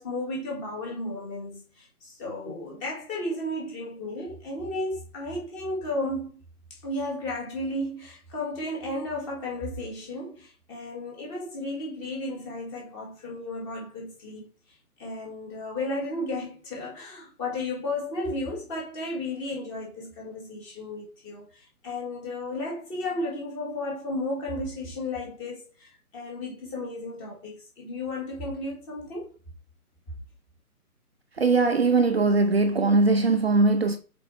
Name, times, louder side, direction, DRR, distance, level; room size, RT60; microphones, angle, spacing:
voice 1, 0.0-6.3 6.7-14.5 15.0-29.3, left 1 dB, 15° left, 2.3 m, -34 dB
voice 2, 31.4-34.0, right 3 dB, 45° right, 0.8 m, -21 dB
6.5 x 5.5 x 5.0 m
hypercardioid pair, 165°, 45 cm